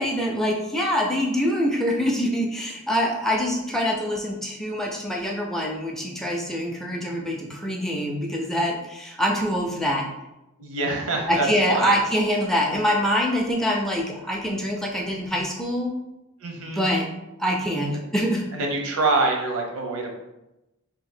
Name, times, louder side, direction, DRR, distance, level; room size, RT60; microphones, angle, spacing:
voice 1, 0.0-10.1 11.3-15.9 16.6-17.1 17.4-18.4, equal, ahead, -1 dB, 0.4 m, -25 dB
voice 2, 10.6-11.9 16.4-16.8 18.5-20.1, right 3 dB, 85° right, 1 dB, 0.8 m, -25 dB
2.9 x 2.6 x 4.2 m, 0.93 s
head